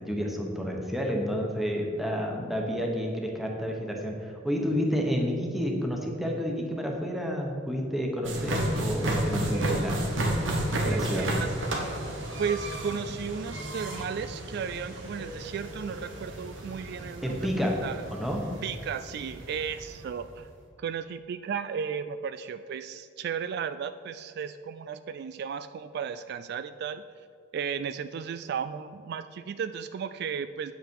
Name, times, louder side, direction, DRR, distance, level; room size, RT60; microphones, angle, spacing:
voice 1, 0.0-10.0 10.9-11.3 17.2-17.8 18.1-18.4, equal, ahead, 0 dB, 1.3 m, -30 dB
sound 1, 8.2-20.2, right 1 dB, 85° right, 1.6 m, -32 dB
voice 2, 9.5-9.8 10.8-11.5 12.4-17.5 17.8-18.0 18.6-20.5 20.8-27.0 27.5-30.7, right 7 dB, 60° right, 12 dB, 0.3 m, -34 dB
8.7 x 8.0 x 4.7 m, 2.5 s
head